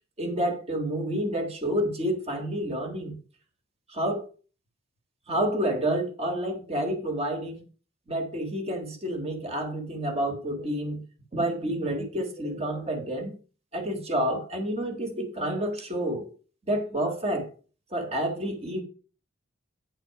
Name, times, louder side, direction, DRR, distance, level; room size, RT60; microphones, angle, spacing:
voice 1, 0.2-3.2 3.9-4.2 5.3-7.6 8.1-11.0 11.3-13.3 13.7-16.3 16.7-17.5 17.9-18.8, right 1 dB, 30° right, 1.5 m, -29 dB
9.2 x 4.0 x 5.7 m
head